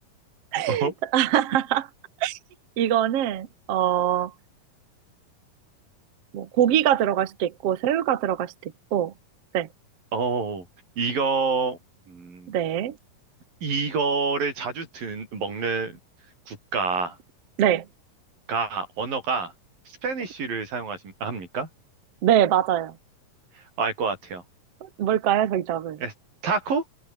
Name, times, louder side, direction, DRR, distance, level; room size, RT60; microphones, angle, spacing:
voice 1, 0.5-1.9 2.2-2.4 2.8-4.3 6.3-9.1 9.5-9.7 12.5-13.0 17.6-17.9 22.2-22.9 24.8-26.0, right 11 dB, 55° right, 2.1 m, -23 dB
voice 2, 10.1-10.7 11.0-11.8 12.1-12.5 13.6-16.0 16.5-17.2 18.5-19.5 19.9-21.7 23.8-24.4 26.0-26.1 26.4-26.8, right 4 dB, 85° right, 8.0 m, -27 dB
omnidirectional pair, 3.9 m